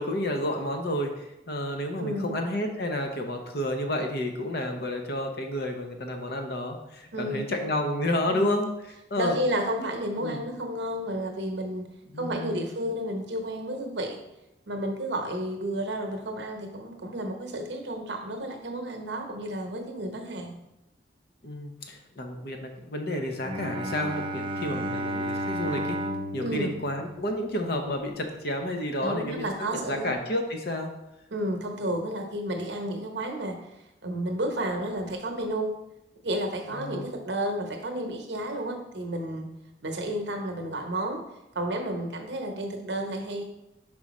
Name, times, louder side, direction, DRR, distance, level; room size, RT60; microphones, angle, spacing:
voice 1, 0.0-8.7 9.1-9.4 9.8-9.9 10.2-10.4 12.1-12.7 21.4-26.0 26.3-30.9 36.7-37.1, left 1 dB, 55° left, 4 dB, 0.8 m, -30 dB
voice 2, 2.0-2.4 7.1-7.5 8.3-8.6 9.2-11.8 12.2-14.2 14.7-20.6 26.4-26.8 29.0-30.1 31.3-33.6 34.0-35.8 36.2-39.5 39.8-41.2 41.5-43.4, right 1 dB, 70° right, 4 dB, 0.9 m, -31 dB
Bowed string instrument, 23.4-27.8, equal, 25° right, 0.4 m, -33 dB
5.0 x 4.8 x 4.2 m, 0.90 s
head